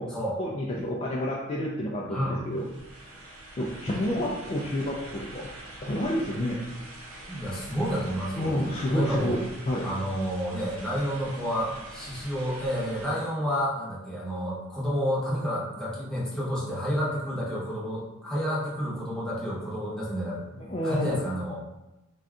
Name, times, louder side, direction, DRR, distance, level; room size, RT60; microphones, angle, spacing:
voice 1, 0.4-2.6 3.0-5.5 5.8-6.6 8.4-9.4 9.7-9.9 20.6-21.2, left 1 dB, 30° left, -4 dB, 0.3 m, -29 dB
voice 2, 2.1-2.4 7.3-8.7 8.9-9.3 9.8-20.6 20.8-21.6, equal, 5° left, -7 dB, 0.8 m, -30 dB
sound 1, 2.5-13.3, right 1 dB, 75° right, 0.6 m, -44 dB
2.6 x 2.3 x 3.5 m, 0.99 s
head